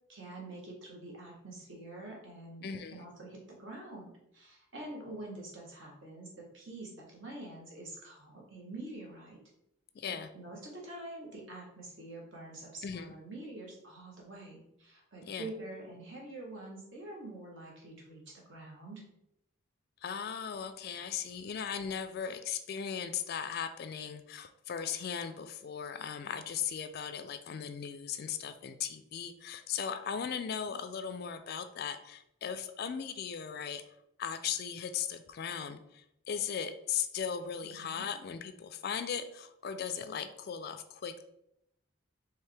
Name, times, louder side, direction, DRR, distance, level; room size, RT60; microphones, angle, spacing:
voice 1, 0.1-9.4 10.0-19.0 37.6-38.0, right 2 dB, 60° right, -2 dB, 1.4 m, -46 dB
voice 2, 2.6-3.0 9.9-10.3 12.8-13.2 15.3-15.5 20.0-33.8 34.2-41.2, left 7 dB, 45° left, 10 dB, 0.3 m, -38 dB
4.6 x 3.3 x 3.3 m, 0.80 s
head